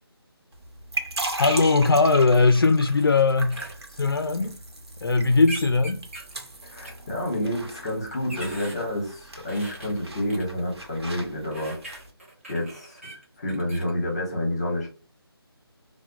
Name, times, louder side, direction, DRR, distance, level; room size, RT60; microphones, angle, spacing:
sound 1, 0.5-12.1, right 2 dB, 85° right, 1.0 m, -38 dB
voice 1, 1.4-3.6 4.0-4.5 5.0-6.0, left 3 dB, 60° left, 0.4 m, -19 dB
sound 2, 2.6-3.0 3.5-3.7 5.4-6.3 6.8-6.9 7.9-8.8 9.5-10.4 11.5-13.9, right 1 dB, 30° right, 0.9 m, -40 dB
voice 2, 6.6-11.8 12.5-13.0 13.4-14.9, left 1 dB, 15° left, 0.9 m, -29 dB
4.3 x 2.1 x 2.4 m
figure-of-eight pair, 180°, 13 cm